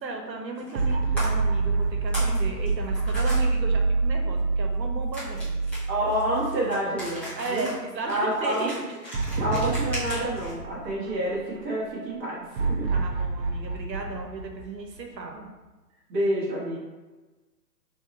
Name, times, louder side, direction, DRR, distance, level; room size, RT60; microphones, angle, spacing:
voice 1, 0.0-5.6 7.3-9.0 12.9-15.5, right 3 dB, 90° right, 2 dB, 1.0 m, -35 dB
sound 1, 0.6-0.9 1.2-1.3 1.8-2.4 2.6-3.4 5.1-10.5, equal, ahead, 0.8 m, -38 dB
sound 2, 0.7-7.1 7.5-7.6 9.1-11.6 12.6-15.3, right 3 dB, 40° right, 0.7 m, -27 dB
voice 2, 5.9-7.7 8.1-8.7 9.4-12.9 16.1-16.8, right 1 dB, 20° right, -7 dB, 1.2 m, -28 dB
3.7 x 3.0 x 4.2 m, 1.2 s
hypercardioid pair, 145°, 50 cm